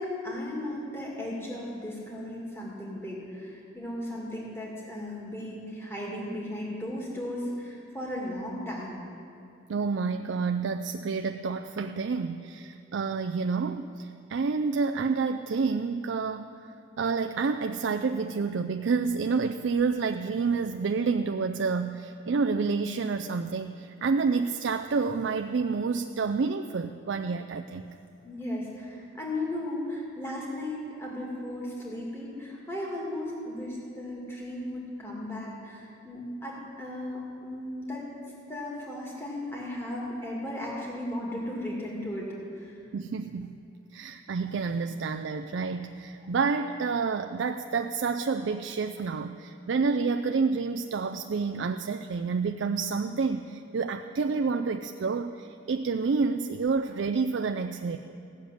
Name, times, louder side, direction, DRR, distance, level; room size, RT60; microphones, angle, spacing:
voice 1, 0.0-9.0 28.2-38.1 38.5-42.3 42.5-42.8, left 1 dB, 10° left, -4 dB, 2.2 m, -36 dB
voice 2, 9.7-16.5 17.0-27.9 42.9-43.5 43.9-58.0, right 4 dB, 65° right, 6 dB, 0.4 m, -29 dB
16.0 x 7.2 x 9.0 m, 2.6 s
head